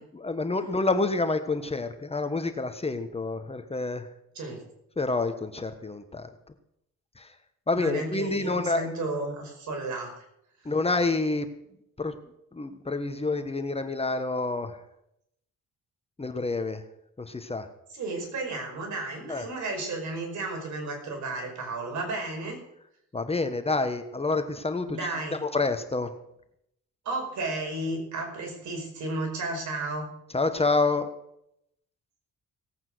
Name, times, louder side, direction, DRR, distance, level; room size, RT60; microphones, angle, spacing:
voice 1, 0.1-4.1 5.0-6.3 7.2-7.3 7.7-8.9 10.6-11.5 12.0-12.2 12.5-14.8 16.2-16.8 17.2-17.7 19.3-19.4 23.1-25.0 25.3-26.1 30.3-31.1, left 3 dB, 20° left, 8 dB, 1.3 m, -28 dB
voice 2, 7.8-10.2 17.9-22.6 24.9-25.3 27.1-30.1, right 2 dB, 70° right, 2 dB, 5.4 m, -33 dB
17.5 x 8.8 x 6.3 m, 0.79 s
cardioid pair, 90°, 30 cm